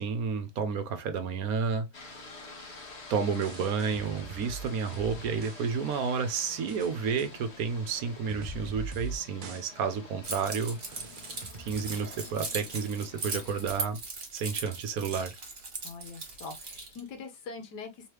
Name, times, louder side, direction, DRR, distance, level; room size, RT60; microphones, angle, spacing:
voice 1, 0.0-2.0 3.1-10.8 11.6-14.0 14.3-15.3, right 6 dB, 70° right, 1.1 m, -31 dB
sound 1, 1.9-13.8, left 3 dB, 45° left, 1.1 m, -49 dB
sound 2, 3.3-5.7 5.9-6.0 6.4-6.9 7.2-7.3 7.9-8.0 8.3-9.2 9.4-9.6 9.9-10.0 10.4-10.5 10.9-12.3, right 4 dB, 85° right, 0.4 m, -42 dB
Keys jangling, 10.2-17.0, right 3 dB, 40° right, 1.4 m, -39 dB
voice 2, 15.8-18.1, left 4 dB, 80° left, 1.6 m, -43 dB
3.5 x 3.2 x 3.1 m
omnidirectional pair, 1.7 m